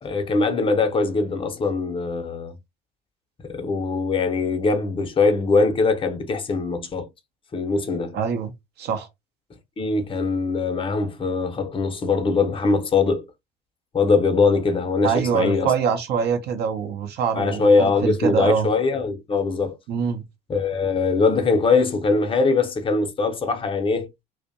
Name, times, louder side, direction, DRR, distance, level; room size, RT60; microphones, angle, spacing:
voice 1, 0.0-2.5 3.4-7.1 7.5-8.2 9.8-13.3 13.9-15.7 17.3-19.8 20.5-24.1, left 4 dB, 25° left, 0.7 m, -22 dB
voice 2, 8.1-8.5 8.8-9.1 15.0-18.7 19.9-20.2, right 6 dB, 50° right, 0.6 m, -24 dB
2.5 x 2.0 x 2.6 m
hypercardioid pair, 65°, 21 cm